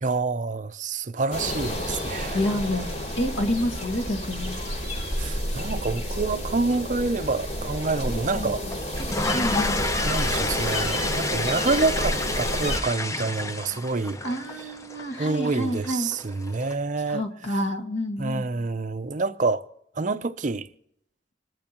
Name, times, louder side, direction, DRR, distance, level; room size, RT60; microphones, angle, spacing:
voice 1, 0.0-2.4 5.2-8.7 10.0-14.2 15.2-17.2 18.2-19.6 20.0-20.7, right 3 dB, 40° right, 0.6 m, -27 dB
sound 1, 1.3-12.8, equal, 35° left, 2.8 m, -30 dB
voice 2, 2.3-2.9 3.2-4.6 8.0-8.5 9.3-9.8 14.2-16.1 17.1-18.5, left 1 dB, 80° left, 1.8 m, -28 dB
sound 2, 8.7-16.7, left 2 dB, 15° left, 0.6 m, -30 dB
26.0 x 12.5 x 3.0 m
head